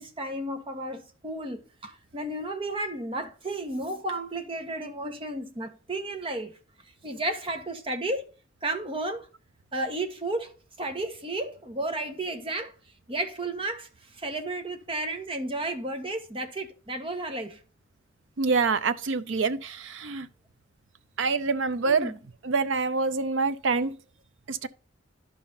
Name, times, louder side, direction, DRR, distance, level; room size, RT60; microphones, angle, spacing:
voice 1, 0.0-6.5 7.0-8.2 8.6-9.3 9.7-10.5 10.8-12.7 13.1-17.6 21.9-22.2, right 2 dB, 30° right, 1.2 m, -33 dB
voice 2, 18.4-20.3 21.2-22.1 22.4-24.0 24.5-24.7, right 4 dB, 90° right, 0.6 m, -26 dB
11.0 x 5.6 x 2.7 m
head